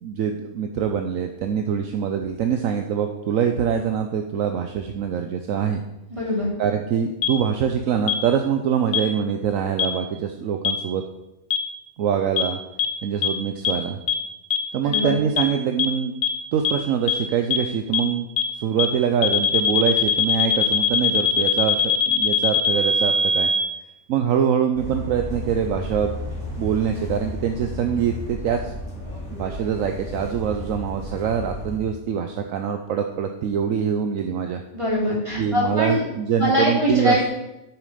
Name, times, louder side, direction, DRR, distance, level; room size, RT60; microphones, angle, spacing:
voice 1, 0.0-5.8 6.6-11.0 12.0-12.6 13.0-14.0 14.7-16.1 16.5-18.3 18.5-23.5 24.1-26.1 26.6-28.7 29.3-34.6 35.4-37.2, right 8 dB, 70° right, 5 dB, 1.0 m, -24 dB
voice 2, 6.1-6.5 14.8-15.1 34.7-36.0 36.4-37.3, equal, 20° right, -4 dB, 3.1 m, -22 dB
sound 1, 7.2-7.3 8.1-8.2 8.9-9.0 9.8-9.9 10.6-10.7 11.5-11.6 12.4-12.5 12.8-12.9 13.2-13.3 13.6-13.7 14.1-14.2 14.5-14.6 14.9-15.0 15.4-15.5 15.8-15.9 16.2-16.3 16.6-16.7 17.1-17.2 17.5-17.6 17.9-18.0 18.4-18.5 18.8-18.9 19.2-23.6, left 6 dB, 85° left, 1.4 m, -20 dB
sound 2, 24.7-31.8, left 1 dB, 50° left, 2.8 m, -33 dB
8.2 x 7.1 x 5.0 m, 0.93 s
omnidirectional pair, 1.5 m